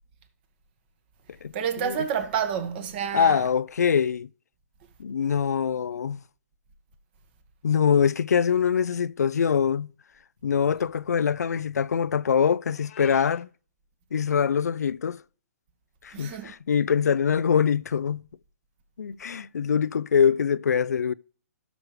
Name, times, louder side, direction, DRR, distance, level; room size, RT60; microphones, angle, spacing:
voice 1, 1.5-3.5 16.1-16.5, right 8 dB, 40° right, 1.7 m, -29 dB
voice 2, 3.1-4.3 5.0-6.2 7.6-9.9 10.4-13.5 14.1-15.2 16.0-18.2 19.0-21.1, left 7 dB, 85° left, 0.4 m, -23 dB
Meow, 12.7-13.4, left 11 dB, 50° left, 1.3 m, -48 dB
17.0 x 6.2 x 3.2 m
hypercardioid pair, 140°, 9 cm